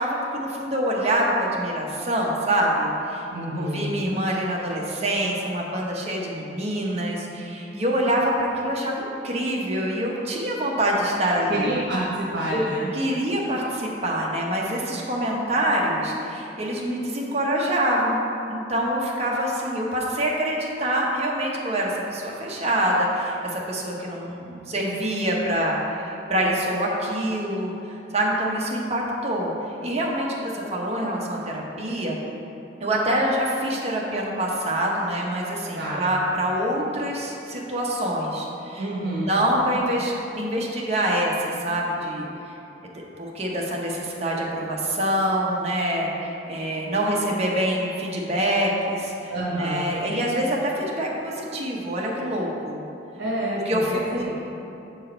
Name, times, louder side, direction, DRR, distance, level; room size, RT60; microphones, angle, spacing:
voice 1, 0.0-3.2 3.6-11.7 12.5-12.6 12.9-18.2 18.5-27.7 28.1-29.5 29.8-32.2 32.8-38.8 39.1-42.3 43.2-52.8 53.7-54.3, right 1 dB, 35° right, -2 dB, 1.0 m, -25 dB
voice 2, 3.3-3.8 11.5-12.9 35.7-36.1 38.8-39.3 49.3-49.9 53.2-54.3, right 1 dB, 75° right, -6 dB, 1.1 m, -28 dB
7.8 x 4.6 x 4.4 m, 2.9 s
head